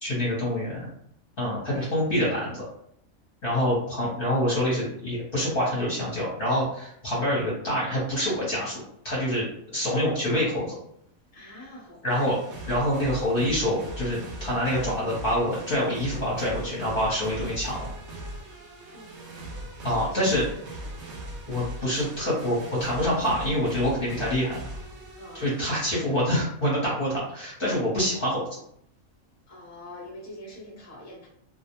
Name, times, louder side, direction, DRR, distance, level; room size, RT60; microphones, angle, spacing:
voice 1, 0.0-0.8 1.4-2.6 3.4-9.5 9.7-10.7 12.0-12.4 12.7-17.9 19.8-20.4 21.5-24.6 25.3-28.5, equal, 50° left, -6 dB, 0.9 m, -26 dB
voice 2, 11.3-12.3 18.9-19.5 19.9-21.1 25.2-25.6 29.5-31.3, left 1 dB, 15° left, -5 dB, 0.7 m, -45 dB
sound 1, 12.1-25.8, right 1 dB, 65° right, 0.8 m, -39 dB
2.4 x 2.0 x 2.9 m, 0.70 s
omnidirectional pair, 1.4 m